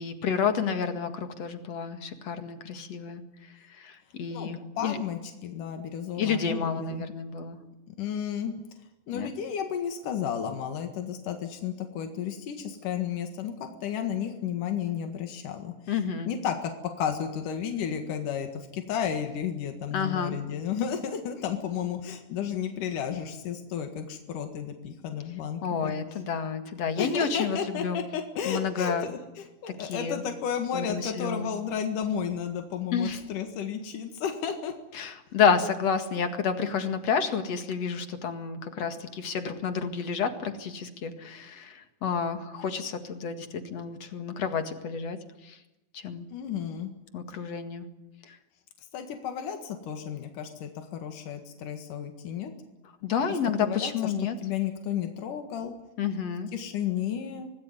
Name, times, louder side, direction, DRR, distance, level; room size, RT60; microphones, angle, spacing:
voice 1, 0.0-5.0 6.2-7.6 9.1-9.3 15.9-16.3 19.9-20.4 25.6-28.0 28.4-29.0 29.8-30.2 30.7-31.5 32.9-33.2 34.9-45.2 45.4-45.6 45.9-46.3 47.1-47.9 48.2-48.4 53.0-54.4 56.0-56.5, left 6 dB, 55° left, 7 dB, 2.9 m, -30 dB
voice 2, 4.8-7.0 7.9-8.5 9.1-15.7 16.3-16.7 17.0-25.9 26.9-34.7 46.3-46.9 48.9-52.5 53.6-54.1 54.4-55.7 56.5-57.5, left 8 dB, 85° left, 5 dB, 3.4 m, -32 dB
26.0 x 19.5 x 9.7 m, 0.96 s
omnidirectional pair, 3.6 m